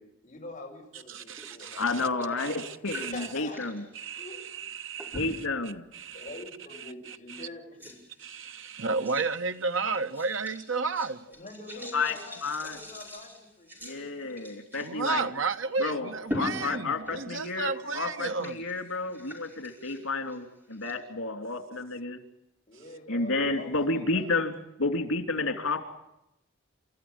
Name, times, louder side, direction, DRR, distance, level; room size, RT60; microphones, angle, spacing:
voice 1, 0.2-2.4 2.9-3.6 4.1-4.4 6.1-8.0 11.3-14.5 22.7-24.3, left 2 dB, 35° left, 6.0 m, -45 dB
voice 2, 1.1-1.8 2.4-3.1 3.9-5.5 5.9-6.4 6.7-7.5 8.2-11.3 14.7-18.6, right 4 dB, 70° right, 1.2 m, -33 dB
sound 1, 1.4-1.7 2.0-3.8 5.0-5.6 6.1-6.3 7.1-7.2 7.8-8.3 9.0-9.4 9.8-15.1 15.5-15.6 16.3-17.7 18.0-20.9, left 1 dB, 10° right, 5.3 m, -41 dB
voice 3, 1.7-3.8 5.1-5.8 11.9-12.1 12.4-12.8 13.8-15.3 15.8-22.2 23.1-24.5 24.8-25.8, left 3 dB, 85° left, 3.1 m, -31 dB
29.5 x 14.0 x 8.9 m
head